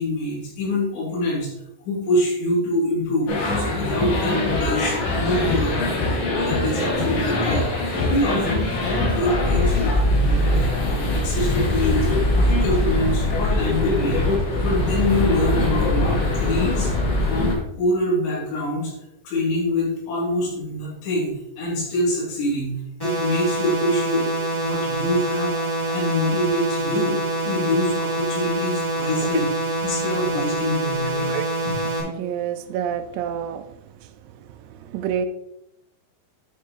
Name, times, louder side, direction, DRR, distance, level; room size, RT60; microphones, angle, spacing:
voice 1, 0.0-1.5 1.8-5.8 6.4-12.1 12.5-16.9 17.3-18.9 19.2-22.7 23.0-24.3 24.6-29.5 29.8-31.3 31.7-31.8, left 1 dB, 85° left, -5 dB, 5.3 m, -25 dB
sound 1, 3.3-17.6, left 2 dB, 65° left, 4.2 m, -22 dB
sound 2, 23.0-32.0, right 1 dB, 5° left, 2.7 m, -26 dB
voice 2, 32.2-33.7 34.0-34.1 34.4-35.3, right 9 dB, 80° right, 9 dB, 2.6 m, -29 dB
10.0 x 6.9 x 3.1 m, 0.84 s
omnidirectional pair, 5.0 m